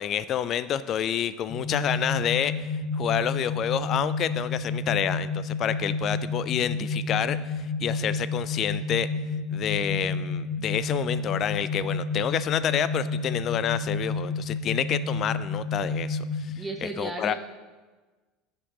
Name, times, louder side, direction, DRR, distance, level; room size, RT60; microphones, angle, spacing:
voice 1, 0.0-9.1 9.5-17.3, left 9 dB, 45° left, 15 dB, 0.3 m, -28 dB
sound 1, 1.5-16.5, left 3 dB, 25° left, 1.4 m, -30 dB
voice 2, 16.6-17.3, right 2 dB, 15° right, 3 dB, 0.7 m, -34 dB
11.0 x 4.5 x 3.0 m, 1.3 s
hypercardioid pair, 75°, 0 cm